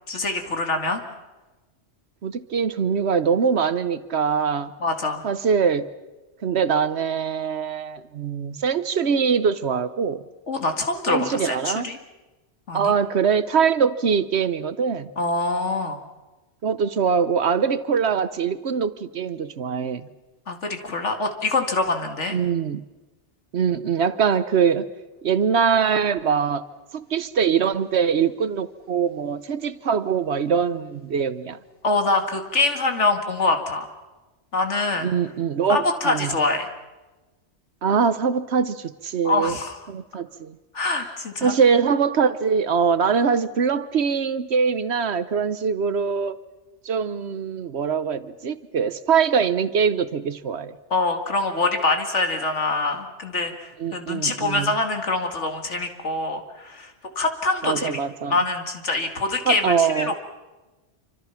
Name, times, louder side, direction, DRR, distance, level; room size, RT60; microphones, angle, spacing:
voice 1, 0.1-1.0 4.8-5.2 10.5-12.0 12.7-12.9 15.2-16.0 20.5-22.4 31.8-33.8 34.5-35.1 35.7-36.7 39.2-39.8 40.7-41.5 50.9-58.0 58.3-60.1, left 3 dB, 80° left, 2.5 m, -24 dB
voice 2, 2.2-4.7 5.2-5.9 6.4-10.2 11.1-11.9 12.7-15.1 16.6-20.1 22.3-22.8 23.5-24.9 25.2-26.6 26.9-31.6 35.0-36.4 37.8-39.5 39.9-40.6 41.4-46.4 46.8-50.7 53.8-54.7 57.6-58.4 59.5-60.1, right 6 dB, 65° right, 1.2 m, -23 dB
27.0 x 25.5 x 5.9 m
omnidirectional pair, 1.2 m